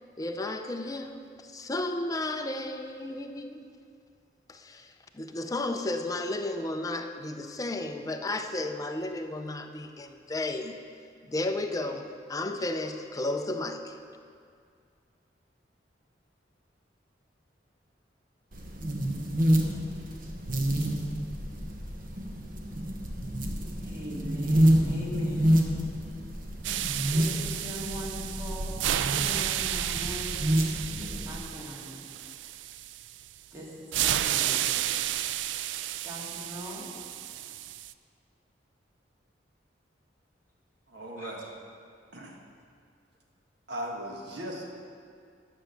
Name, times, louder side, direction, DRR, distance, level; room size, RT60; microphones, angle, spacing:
voice 1, 0.2-3.7 4.5-10.8 11.2-14.0, left 2 dB, 20° left, 6 dB, 0.5 m, -33 dB
sound 1, 18.5-31.4, equal, 50° right, 1.0 m, -28 dB
voice 2, 23.8-25.5 27.1-30.6 30.9-32.1 33.5-34.7 36.0-36.9 41.2-41.3, equal, 15° right, -6 dB, 2.2 m, -41 dB
sound 2, 26.6-33.3 33.9-37.9, right 12 dB, 90° right, 0.3 m, -32 dB
voice 3, 40.9-41.5 42.1-42.4 43.7-44.6, right 1 dB, 65° right, -1 dB, 1.5 m, -37 dB
10.0 x 6.3 x 6.6 m, 2.3 s
head